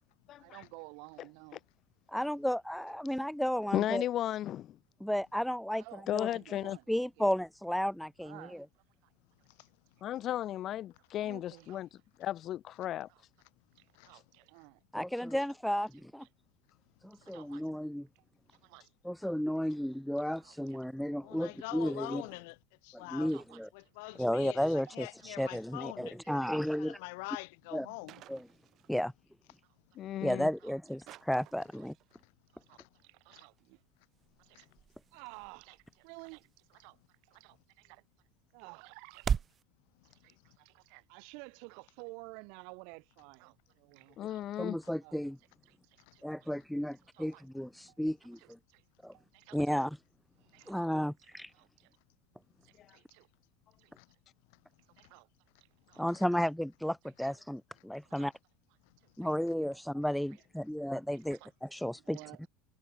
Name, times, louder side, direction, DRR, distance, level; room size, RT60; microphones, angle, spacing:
voice 1, 0.4-1.6 5.7-7.3 8.2-8.7 11.2-11.9 13.1-13.2 13.8-14.8 15.2-15.3 16.2-16.3 17.2-17.7 18.6-18.9 19.6-19.8 20.4-20.8 21.6-21.7 22.3-22.4 23.3-23.6 24.0-24.2 24.9-25.0 25.3-25.6 26.4-26.6 27.8-28.4 30.6-30.8 31.8-31.9 32.5-33.8 34.4-34.7 35.1-37.0 37.3-38.0 38.5-39.3 40.0-44.6 45.0-45.2 45.7-46.5 47.0-47.4 47.9-48.0 48.4-48.8 49.1-49.8 50.4-50.9 51.5-51.9 52.6-53.3 53.8-53.9 55.0-55.3 55.6-56.0 58.1-58.3 59.0-59.3 61.3-61.5 62.0-62.4, right 37 dB, 55° right, 2.5 m, -53 dB
voice 2, 2.1-4.0 5.0-6.3 6.9-8.7 14.9-16.3 17.0-18.1 19.0-22.2 22.9-23.7 24.2-27.0 27.7-27.9 28.3-28.4 28.9-29.1 30.2-31.9 44.6-45.4 46.2-48.6 49.0-49.1 49.5-50.0 50.7-51.5 56.0-58.3 59.2-62.5, equal, ahead, 0.5 m, -33 dB
voice 3, 3.7-4.7 6.1-6.8 10.0-11.9 12.2-13.1 30.0-30.5 44.2-44.8, left 12 dB, 30° left, 0.7 m, -34 dB
voice 4, 21.2-22.6 22.8-23.3 23.7-26.4 26.8-28.2 32.8-32.9 33.3-33.4 34.5-34.6 54.0-54.1 56.1-56.3, left 29 dB, 65° left, 2.3 m, -44 dB
sound 1, 28.1-29.1 31.1-32.2, right 14 dB, 35° right, 7.8 m, -56 dB
sound 2, 33.4-39.6, right 7 dB, 20° right, 2.3 m, -41 dB
cardioid pair, 175°, 0 cm